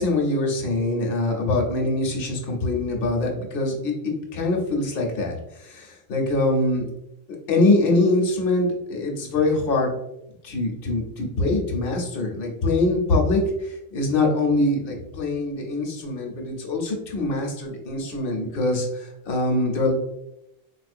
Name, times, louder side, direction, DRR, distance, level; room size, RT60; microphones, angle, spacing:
voice 1, 0.0-6.9 7.5-9.9 10.4-19.9, left 2 dB, 60° left, 0 dB, 0.9 m, -23 dB
3.9 x 2.4 x 2.5 m, 0.85 s
omnidirectional pair, 1.1 m